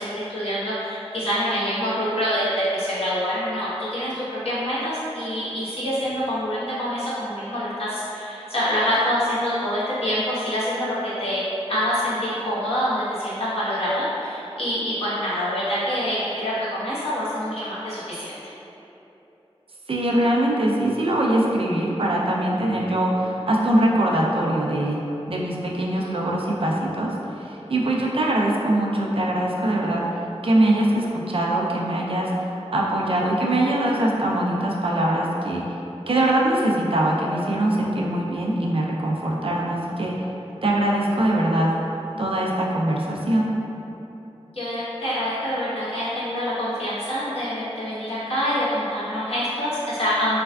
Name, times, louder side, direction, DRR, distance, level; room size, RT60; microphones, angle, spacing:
voice 1, 0.0-11.4 11.7-18.5 26.0-26.1 44.5-50.4, equal, 65° left, -11 dB, 1.1 m, -26 dB
voice 2, 19.9-25.0 25.3-30.0 30.4-35.7 36.1-40.3 40.6-41.7 42.2-43.5, right 1 dB, 60° right, -2 dB, 0.4 m, -22 dB
3.3 x 3.3 x 2.3 m, 3.0 s
wide cardioid pair, 65°, 11 cm